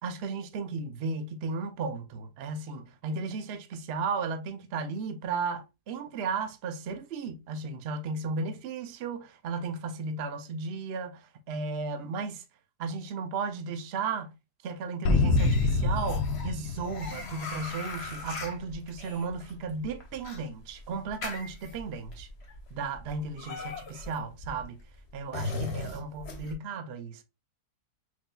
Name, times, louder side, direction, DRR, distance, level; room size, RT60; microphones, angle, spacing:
voice 1, 0.0-12.4 12.8-14.3 14.6-22.3 22.7-24.8 25.1-27.2, right 4 dB, 65° right, 0.6 m, -35 dB
sound 1, 15.1-17.8, left 3 dB, 80° left, 1.2 m, -26 dB
sound 2, 15.4-26.5, left 3 dB, 45° left, 1.1 m, -40 dB
5.9 x 2.7 x 2.2 m
omnidirectional pair, 1.7 m